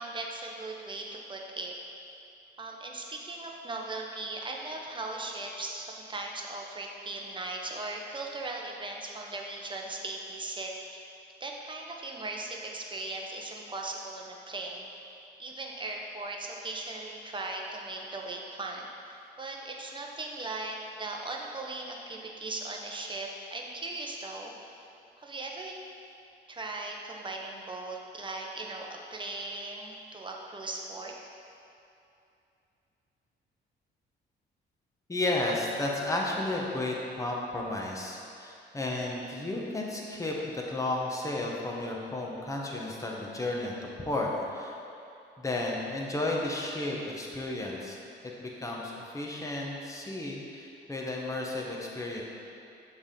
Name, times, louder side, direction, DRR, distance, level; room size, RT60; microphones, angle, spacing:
voice 1, 0.0-1.7 2.6-11.0 11.4-24.9 25.2-25.7 26.5-31.1, right 2 dB, 25° right, 0 dB, 0.9 m, -38 dB
voice 2, 35.1-44.8 45.4-48.0 48.4-52.2, left 2 dB, 15° left, -2 dB, 1.0 m, -33 dB
7.1 x 3.6 x 5.2 m, 2.6 s
cardioid pair, 90°, 20 cm